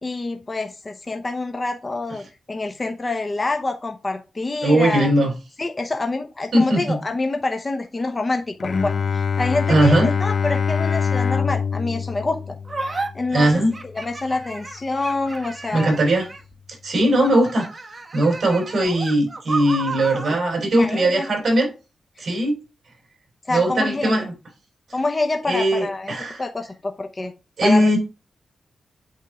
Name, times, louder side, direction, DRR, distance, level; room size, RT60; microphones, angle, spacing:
voice 1, 0.0-5.1 5.6-12.6 12.9-13.6 13.9-16.0 20.7-21.3 22.2-22.3 23.5-24.3 24.9-26.1 26.4-27.3 27.6-27.9, left 3 dB, 30° left, 0.9 m, -26 dB
voice 2, 4.6-5.3 6.5-7.0 9.7-10.1 13.3-13.7 15.7-16.3 16.8-17.7 18.1-21.7 22.2-22.6 23.5-24.3 25.5-26.5 27.6-28.0, right 1 dB, 55° right, 4.0 m, -19 dB
Bowed string instrument, 8.6-14.3, left 6 dB, 55° left, 0.3 m, -25 dB
sound 1, 12.7-13.1 13.7-16.5 17.2-20.4, right 3 dB, 35° right, 1.2 m, -32 dB
8.5 x 3.7 x 4.9 m
wide cardioid pair, 100°, 0 cm